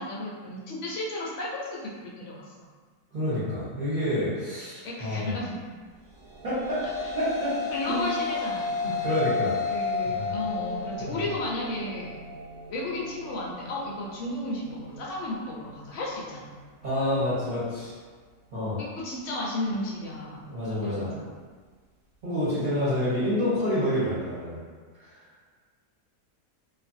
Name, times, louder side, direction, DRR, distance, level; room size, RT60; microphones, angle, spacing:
voice 1, 0.0-2.5 4.8-5.6 7.7-9.1 9.7-12.1 12.7-16.5 18.8-20.5 20.8-21.3 22.6-22.7, left 1 dB, 65° left, -4 dB, 0.7 m, -34 dB
voice 2, 3.1-5.3 6.4-7.5 7.9-8.0 9.0-9.6 10.1-10.4 11.0-11.2 16.8-17.9 18.5-18.8 20.4-21.1 22.2-24.6 25.0-25.1, left 1 dB, 40° right, -13 dB, 0.9 m, -28 dB
sound 1, 6.2-14.8, left 3 dB, 65° right, 1.0 m, -33 dB
2.6 x 2.4 x 2.6 m, 1.5 s
omnidirectional pair, 1.7 m